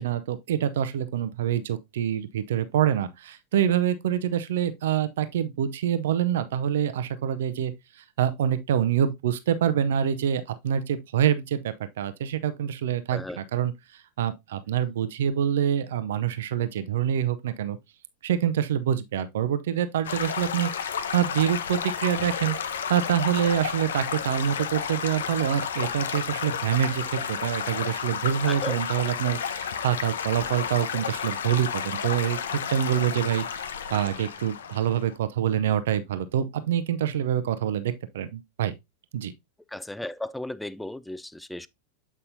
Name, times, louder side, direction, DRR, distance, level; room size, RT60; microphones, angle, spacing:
voice 1, 0.0-17.8 18.2-38.7 39.1-39.3, right 9 dB, 60° right, 0.6 m, -26 dB
Stream / Gurgling / Trickle dribble, 20.0-35.2, left 7 dB, 65° left, 0.6 m, -32 dB
voice 2, 28.5-28.8 39.7-41.7, left 1 dB, 5° left, 0.3 m, -35 dB
8.1 x 5.4 x 2.6 m
figure-of-eight pair, 90°, 0 cm